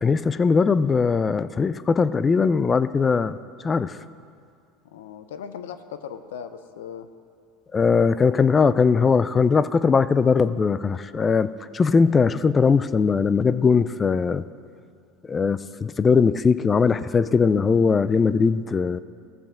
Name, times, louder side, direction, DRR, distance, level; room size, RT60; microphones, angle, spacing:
voice 1, 0.0-3.4 3.6-4.0 7.7-14.4 15.3-19.0, left 5 dB, 25° left, 15 dB, 0.3 m, -20 dB
voice 2, 4.9-7.1, left 8 dB, 85° left, 11 dB, 0.6 m, -38 dB
14.5 x 7.4 x 3.7 m, 2.3 s
hypercardioid pair, 95°, 0 cm